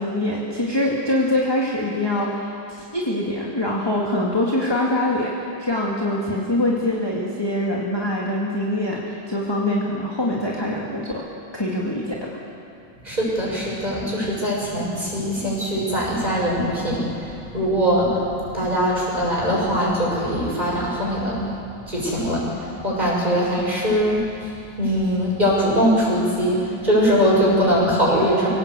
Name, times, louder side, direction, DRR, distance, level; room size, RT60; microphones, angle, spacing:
voice 1, 0.0-5.3 5.6-11.2 11.5-12.3, left 1 dB, 10° left, -4 dB, 2.2 m, -24 dB
voice 2, 13.0-21.5 21.9-28.5, equal, 20° right, -4 dB, 6.9 m, -21 dB
25.5 x 17.5 x 8.3 m, 2.6 s
omnidirectional pair, 2.2 m